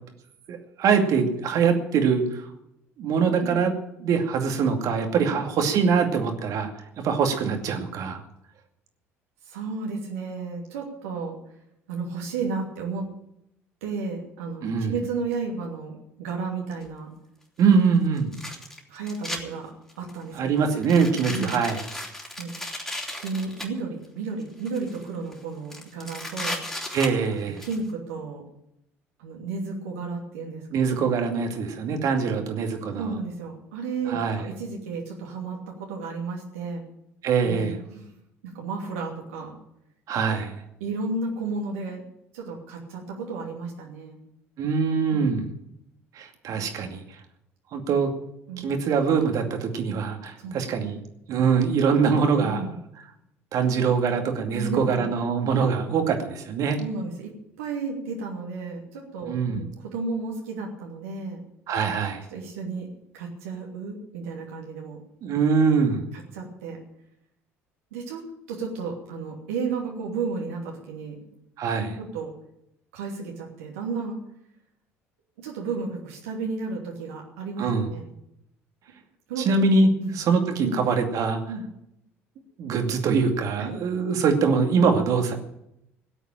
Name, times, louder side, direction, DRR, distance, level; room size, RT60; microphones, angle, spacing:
voice 1, 0.5-2.5 3.0-3.7 4.0-6.7 7.0-8.2 14.6-14.9 17.6-18.4 20.3-21.8 26.9-27.6 30.7-33.2 34.1-34.4 37.2-37.7 40.1-40.6 44.6-45.4 46.2-47.0 47.7-48.1 48.6-51.0 51.3-52.7 53.5-56.8 59.3-59.6 61.7-62.2 65.2-66.0 71.6-71.9 77.6-77.9 79.4-79.9 80.2-81.4 82.6-85.3, right 5 dB, 50° right, 4 dB, 2.4 m, -23 dB
voice 2, 9.4-11.4 11.9-13.0 13.8-17.1 18.9-19.7 20.0-20.5 21.3-21.6 22.4-22.5 23.2-26.6 27.6-28.4 29.2-31.0 33.0-36.8 37.4-38.1 38.4-39.5 40.8-42.0 42.3-44.2 48.5-48.7 50.4-50.7 52.4-52.8 54.5-55.1 56.8-57.3 57.6-61.4 62.3-62.9 63.1-65.0 66.3-66.8 67.9-71.1 71.8-72.3 72.9-74.2 75.4-78.1 79.3-79.6 80.0-80.2 80.6-80.9 81.5-81.6 83.6-83.7, right 4 dB, 70° right, -1 dB, 2.8 m, -33 dB
sound 1, 16.8-16.9 18.2-19.4 19.9-20.2 20.8-23.7 24.4-25.0 25.3-25.4 25.7-27.8, left 1 dB, 5° left, 3.6 m, -35 dB
17.0 x 8.3 x 8.9 m, 0.80 s
figure-of-eight pair, 60°, 7 cm